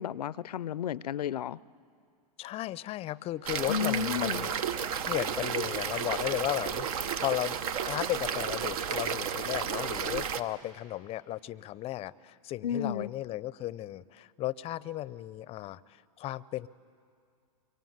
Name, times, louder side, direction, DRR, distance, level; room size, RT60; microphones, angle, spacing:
voice 1, 0.0-1.6 3.7-4.5 12.6-13.1, left 8 dB, 85° left, 21 dB, 0.5 m, -32 dB
voice 2, 2.4-4.6 5.1-7.6 7.9-15.8 16.2-16.7, left 15 dB, 30° left, 20 dB, 0.6 m, -35 dB
sound 1, 3.5-10.4, right 7 dB, 65° right, 1.1 m, -32 dB
24.0 x 24.0 x 9.4 m, 2.3 s
hypercardioid pair, 110°, 20 cm